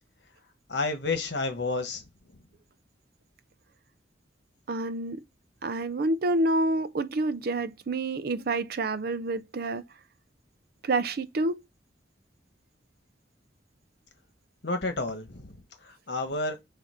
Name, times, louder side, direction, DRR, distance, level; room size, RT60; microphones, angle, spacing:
voice 1, 0.7-2.0 14.6-16.6, left 3 dB, 65° left, 1.3 m, -31 dB
voice 2, 4.7-5.2 5.6-9.8 10.8-11.6, right 2 dB, 55° right, 0.5 m, -28 dB
7.0 x 2.7 x 5.1 m
head